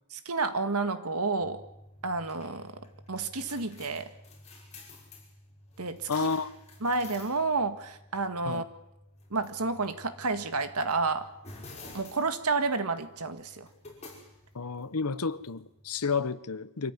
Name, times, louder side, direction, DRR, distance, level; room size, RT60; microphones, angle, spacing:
voice 1, 0.1-1.6 2.0-4.1 5.8-6.3 6.8-8.6 9.3-11.3 11.9-13.7, right 3 dB, 85° right, 1.8 m, -30 dB
sound 1, 1.4-16.1, left 2 dB, 30° left, 6.0 m, -51 dB
voice 2, 6.1-6.5 8.4-8.6 14.5-16.9, left 5 dB, 85° left, 1.0 m, -31 dB
25.5 x 14.5 x 9.5 m
head